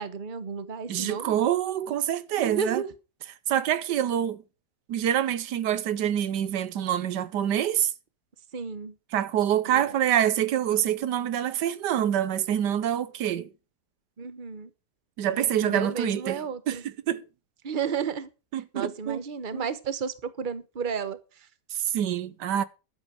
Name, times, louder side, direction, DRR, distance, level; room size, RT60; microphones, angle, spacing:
voice 1, 0.0-1.4 2.4-2.9 8.5-8.9 9.7-9.8 14.2-14.7 15.3-16.8 17.6-18.3 18.5-21.5, right 6 dB, 35° right, 1.1 m, -32 dB
voice 2, 0.9-2.8 3.5-4.4 4.9-7.9 9.1-13.5 15.2-16.8 17.1-17.2 18.5-19.2 19.5-19.7 21.7-22.6, right 10 dB, 85° right, 1.5 m, -26 dB
11.5 x 8.8 x 6.2 m
omnidirectional pair, 1.8 m